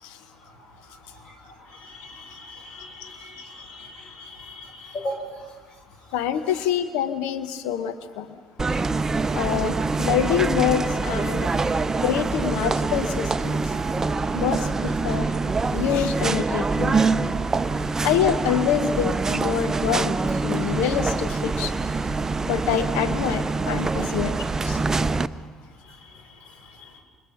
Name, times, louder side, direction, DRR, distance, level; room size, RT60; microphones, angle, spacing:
voice 1, 0.4-6.1 8.8-9.0 13.9-14.4 15.4-15.5 17.2-18.0 20.7-20.8 24.0-24.2 25.0-25.5 25.8-27.0, left 1 dB, 45° left, 2 dB, 6.6 m, -41 dB
voice 2, 6.1-8.3 9.3-11.5 12.0-13.6 14.3-15.3 15.7-17.0 18.0-20.2 20.4-21.8 22.4-24.8, left 9 dB, 65° left, 11 dB, 1.0 m, -26 dB
sound 1, 8.6-25.3, right 3 dB, 20° right, 0.6 m, -25 dB
28.0 x 25.0 x 5.9 m, 1.5 s
figure-of-eight pair, 50°, 2 cm